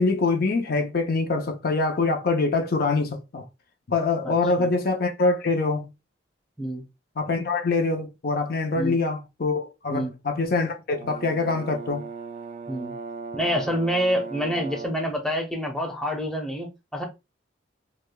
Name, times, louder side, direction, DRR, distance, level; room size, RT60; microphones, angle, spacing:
voice 1, 0.0-3.4 3.9-5.9 7.2-12.0, left 3 dB, 55° left, 0.6 m, -24 dB
voice 2, 4.2-4.7 6.6-6.8 8.7-9.0 9.9-10.1 12.7-12.9 13.3-17.0, equal, 5° left, 0.8 m, -27 dB
Brass instrument, 10.9-15.1, right 5 dB, 40° right, 0.3 m, -38 dB
4.9 x 2.2 x 2.2 m
head